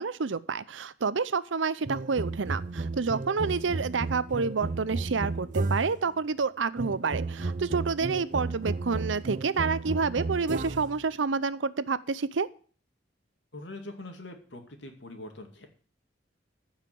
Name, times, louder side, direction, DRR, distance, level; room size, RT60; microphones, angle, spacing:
voice 1, 0.0-12.5, right 4 dB, 80° right, 16 dB, 0.7 m, -29 dB
sound 1, 1.8-6.1 6.8-11.0, right 3 dB, 40° right, 0.5 m, -33 dB
voice 2, 13.5-15.7, left 1 dB, 70° left, 5 dB, 2.4 m, -43 dB
14.5 x 5.7 x 7.6 m, 0.42 s
head